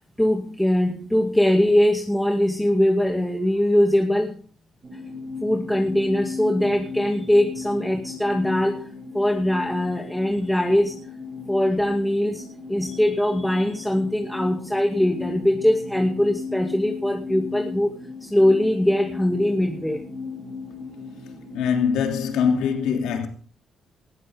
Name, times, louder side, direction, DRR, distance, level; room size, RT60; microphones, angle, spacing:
voice 1, 0.2-4.4 5.4-8.9 9.1-10.9 11.5-12.4 12.7-20.0, left 1 dB, 5° left, 2.4 m, -21 dB
sound 1, 4.8-21.9, left 4 dB, 40° right, 6.3 m, -36 dB
voice 2, 21.5-23.3, left 7 dB, 90° left, 2.9 m, -22 dB
19.5 x 14.5 x 3.6 m
cardioid pair, 90°, 0 cm